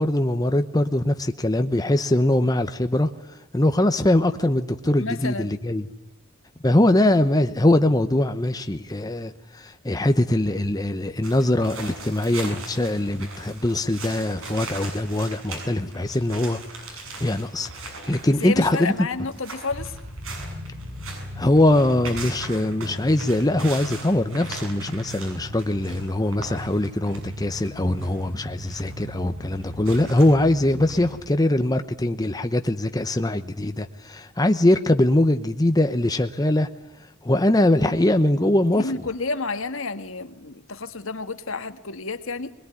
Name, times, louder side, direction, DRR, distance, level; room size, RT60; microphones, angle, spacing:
voice 1, 0.0-3.1 3.5-5.9 6.6-16.6 16.9-18.9 21.4-36.7 37.2-39.0, left 1 dB, 20° left, 0.9 m, -22 dB
voice 2, 5.0-5.6 18.4-19.9 38.7-42.5, left 3 dB, 65° left, 1.6 m, -30 dB
sound 1, 11.2-31.1, right 1 dB, 70° right, 7.6 m, -38 dB
21.5 x 21.5 x 9.9 m
head